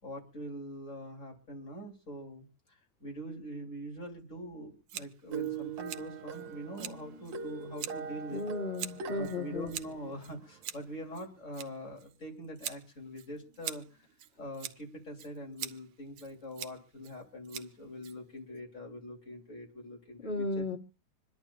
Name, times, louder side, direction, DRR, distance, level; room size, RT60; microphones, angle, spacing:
voice 1, 0.0-2.5 3.0-8.4 9.0-13.8 14.4-20.8, equal, 25° left, 1 dB, 3.4 m, -43 dB
Scissors, 4.9-18.6, right 11 dB, 85° right, 2.4 m, -45 dB
sound 1, 5.3-10.8, right 6 dB, 60° right, 2.8 m, -41 dB
voice 2, 8.3-9.7 20.2-20.8, left 3 dB, 60° left, 4 dB, 0.6 m, -34 dB
26.0 x 12.0 x 2.5 m, 0.31 s
omnidirectional pair, 3.4 m